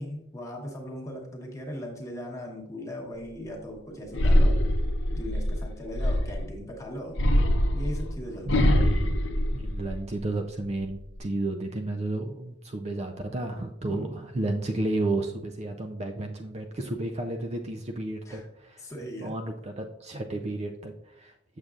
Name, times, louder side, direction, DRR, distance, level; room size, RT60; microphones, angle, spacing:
voice 1, 0.0-4.6 5.1-7.3 7.7-8.8 13.8-14.2 18.2-18.5 18.8-19.4, equal, 15° left, 0 dB, 1.1 m, -38 dB
sound 1, 4.1-6.5 7.1-10.2 10.6-11.2, equal, 60° left, 0.7 m, -24 dB
voice 2, 8.5-9.2 9.5-18.8 19.2-21.6, right 2 dB, 30° right, 4 dB, 0.4 m, -32 dB
7.3 x 6.6 x 2.4 m, 0.78 s
head